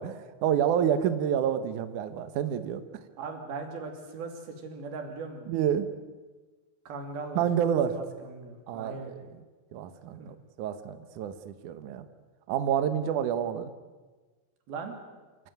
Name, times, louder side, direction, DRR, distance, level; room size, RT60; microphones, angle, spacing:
voice 1, 0.0-2.8 5.5-5.9 7.4-8.0 8.7-9.3 9.7-12.1 12.5-13.7, right 9 dB, 85° right, 10 dB, 1.7 m, -28 dB
voice 2, 3.2-5.5 6.9-7.5 7.9-9.2 10.2-10.3 14.7-15.0, right 4 dB, 60° right, 4 dB, 4.5 m, -39 dB
27.0 x 15.0 x 9.3 m, 1.3 s
omnidirectional pair, 5.3 m